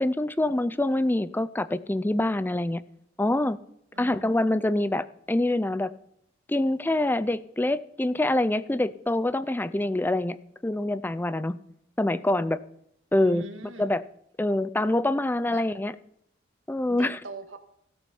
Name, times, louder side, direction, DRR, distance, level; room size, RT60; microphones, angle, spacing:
voice 1, 0.0-2.8 3.2-3.6 4.0-5.9 6.5-10.4 10.6-11.6 12.0-12.6 13.1-13.4 13.8-14.0 14.4-15.9 16.7-17.2, left 1 dB, 10° left, 15 dB, 0.4 m, -25 dB
voice 2, 3.9-4.7 13.1-13.9 15.5-15.6 16.9-17.6, right 2 dB, 85° right, 6 dB, 1.9 m, -43 dB
16.0 x 8.8 x 5.5 m, 0.75 s
head